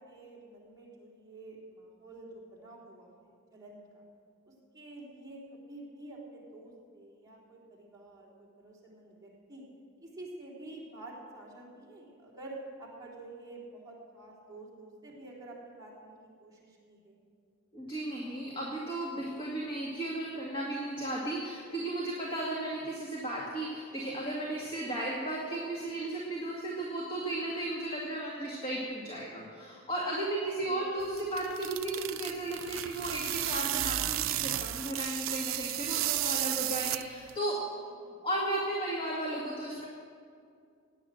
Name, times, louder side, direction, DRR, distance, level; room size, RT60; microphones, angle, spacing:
voice 1, 0.0-3.1 3.5-4.0 4.5-9.7 10.0-17.1 30.6-30.8 37.9-38.2, right 2 dB, 20° right, -5 dB, 3.8 m, -49 dB
voice 2, 17.7-37.6 38.2-39.9, right 1 dB, 25° left, -4 dB, 2.1 m, -35 dB
sound 1, 31.0-37.4, right 15 dB, 80° right, 0.4 m, -33 dB
16.5 x 9.9 x 7.7 m, 2.3 s
head